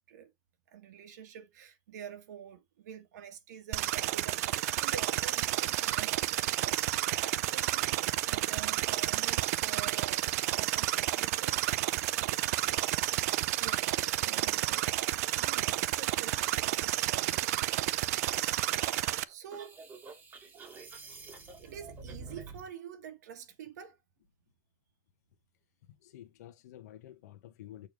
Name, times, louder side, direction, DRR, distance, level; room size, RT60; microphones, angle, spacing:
voice 1, 0.7-6.8 7.1-12.3 13.6-14.9 15.4-16.4 16.7-17.5 18.1-18.2 18.9-19.8 21.6-24.0, right 8 dB, 90° right, 1.3 m, -47 dB
sound 1, 3.7-19.2, right 15 dB, 65° right, 0.4 m, -31 dB
sound 2, 18.7-22.7, right 4 dB, 20° right, 1.1 m, -48 dB
voice 2, 26.0-27.9, left 12 dB, 80° left, 1.0 m, -50 dB
6.8 x 3.2 x 5.2 m
supercardioid pair, 165°, 9 cm